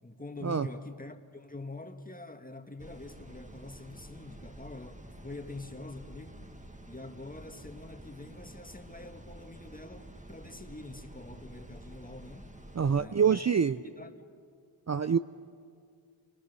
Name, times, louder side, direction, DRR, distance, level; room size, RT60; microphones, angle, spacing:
voice 1, 0.0-6.5 6.9-12.5 13.0-13.4 14.0-14.3, left 2 dB, 15° left, 1.8 m, -45 dB
sound 1, 2.8-13.1, right 1 dB, 15° right, 1.9 m, -49 dB
voice 2, 12.7-13.8 14.9-15.2, right 7 dB, 35° right, 0.6 m, -25 dB
30.0 x 25.0 x 6.9 m
cardioid pair, 45°, 49 cm